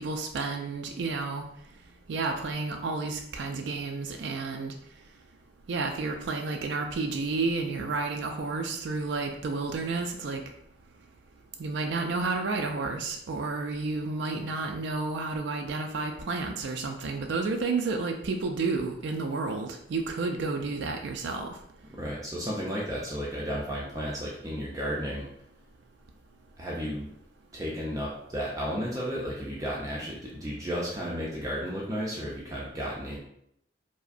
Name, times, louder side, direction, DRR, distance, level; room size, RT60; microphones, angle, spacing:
voice 1, 0.0-1.4 2.1-4.7 5.7-10.4 11.6-21.5, right 3 dB, 85° right, 4 dB, 0.4 m, -31 dB
voice 2, 21.9-25.3 26.6-27.1 27.5-33.2, equal, 20° right, -5 dB, 0.5 m, -33 dB
4.7 x 2.1 x 2.6 m, 0.72 s
head